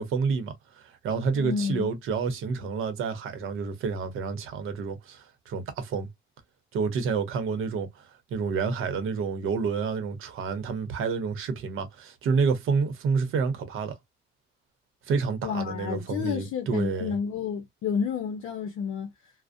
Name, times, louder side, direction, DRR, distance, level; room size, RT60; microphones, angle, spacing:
voice 1, 0.0-6.1 6.7-8.0 8.3-14.0 15.1-17.1, right 5 dB, 80° right, 0.7 m, -29 dB
voice 2, 1.3-1.9 15.4-19.3, left 7 dB, 80° left, 0.5 m, -30 dB
2.4 x 2.0 x 2.5 m
cardioid pair, 130°, 21 cm